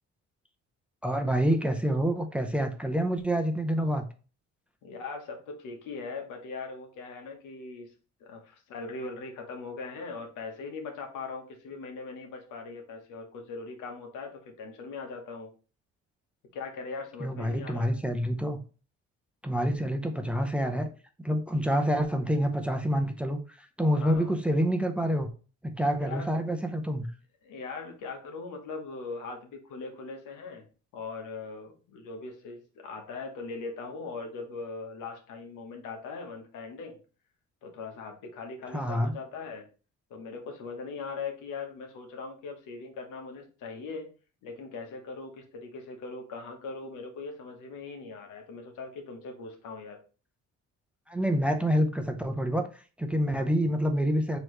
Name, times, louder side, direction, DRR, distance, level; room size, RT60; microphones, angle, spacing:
voice 1, 1.0-4.0 17.2-18.6 19.4-20.9 21.2-23.4 23.8-25.3 25.6-27.1 38.7-39.1 51.1-52.7 53.0-54.4, equal, 5° right, 5 dB, 0.6 m, -27 dB
voice 2, 4.8-7.9 8.2-15.5 16.5-17.9 23.9-24.3 26.0-26.4 27.4-30.7 30.9-37.0 37.6-39.7 40.1-44.1 44.4-50.0, left 4 dB, 90° left, 2 dB, 1.1 m, -40 dB
4.5 x 3.1 x 3.2 m, 0.36 s
cardioid pair, 90°, 30 cm